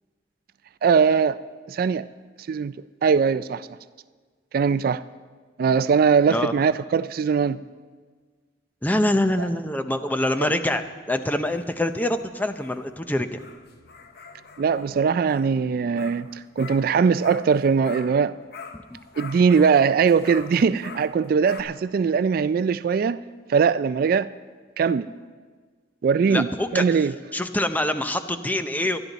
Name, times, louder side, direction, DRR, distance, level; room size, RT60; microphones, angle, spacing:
voice 1, 0.8-1.4 1.7-2.1 2.5-2.7 3.0-3.7 4.5-5.0 5.6-7.6 10.4-10.5 14.6-18.3 19.2-23.2 23.5-24.3 24.8-25.1 26.0-27.1, right 6 dB, 55° right, 0.3 m, -21 dB
voice 2, 8.8-13.4 18.9-19.0 26.3-26.8 27.3-29.0, left 1 dB, 10° left, 0.6 m, -25 dB
sound 1, 11.2-18.2 18.5-21.6, left 5 dB, 60° left, 0.9 m, -44 dB
24.0 x 10.5 x 4.0 m
head